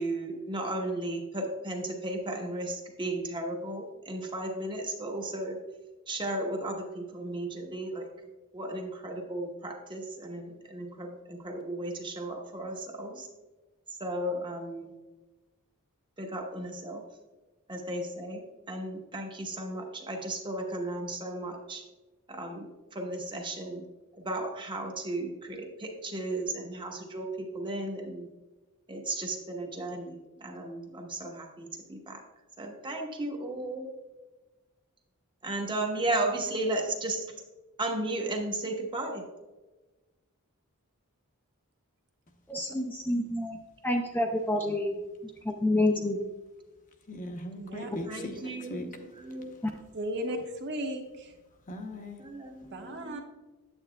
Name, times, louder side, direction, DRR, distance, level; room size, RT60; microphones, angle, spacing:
voice 1, 0.0-5.6 6.1-8.1 8.5-13.3 14.0-14.9 16.2-17.0 17.7-21.8 22.3-23.8 24.2-28.3 28.9-32.2 32.6-33.9 35.4-37.2 37.8-39.2 48.0-49.6 52.2-53.2, right 2 dB, 20° right, 2 dB, 1.0 m, -35 dB
voice 2, 42.5-43.6 43.8-45.0 45.4-46.2, left 1 dB, 10° left, 1 dB, 0.5 m, -28 dB
voice 3, 47.1-48.9 51.7-52.2, left 1 dB, 35° left, 4 dB, 0.8 m, -39 dB
voice 4, 47.6-47.9 49.9-51.3 52.7-53.2, equal, 50° right, 3 dB, 1.0 m, -35 dB
8.9 x 8.5 x 2.2 m, 1.2 s
head